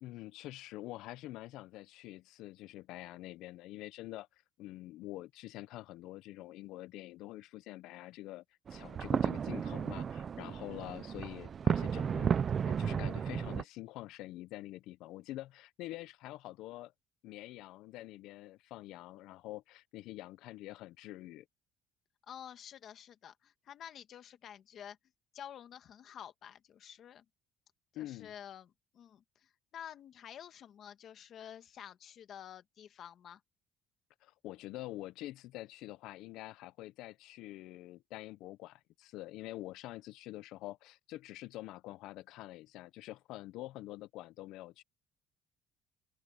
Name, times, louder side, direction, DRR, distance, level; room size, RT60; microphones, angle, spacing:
voice 1, 0.0-8.4 8.7-12.4 12.7-16.9 17.2-21.5 27.9-28.3 34.2-44.8, left 16 dB, 75° left, 0.5 m, -46 dB
sound 1, 8.7-13.6, right 7 dB, 30° right, 0.5 m, -33 dB
voice 2, 22.3-25.0 25.3-27.2 27.9-33.4, left 9 dB, 45° left, 1.6 m, -50 dB
open air
cardioid pair, 160°, 0 cm